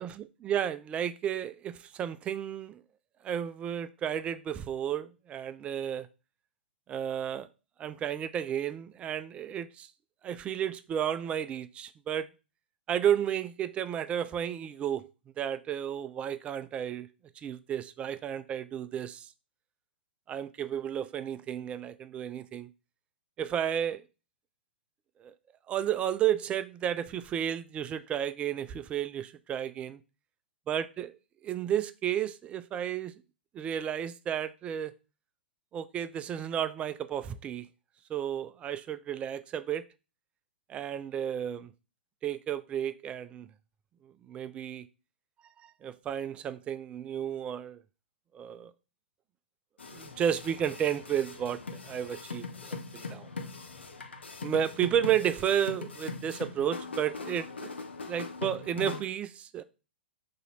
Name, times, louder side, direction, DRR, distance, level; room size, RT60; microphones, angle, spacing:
voice 1, 0.0-2.8 3.2-6.1 6.9-7.5 7.8-9.9 10.2-12.3 12.9-15.1 15.4-17.1 17.4-19.3 20.3-22.7 23.4-24.0 25.2-25.3 25.7-30.0 30.7-31.1 31.4-33.1 33.5-34.9 35.7-37.7 38.1-39.8 40.7-41.7 42.2-43.5 44.3-44.8 45.6-47.8 48.3-48.7 49.9-51.6 51.8-52.5 52.9-53.3 54.4-57.8 58.1-59.6, right 9 dB, 20° right, 0.3 m, -32 dB
sound 1, 49.8-59.0, left 4 dB, 75° left, 0.7 m, -41 dB
3.8 x 2.8 x 4.1 m
figure-of-eight pair, 110°, 6 cm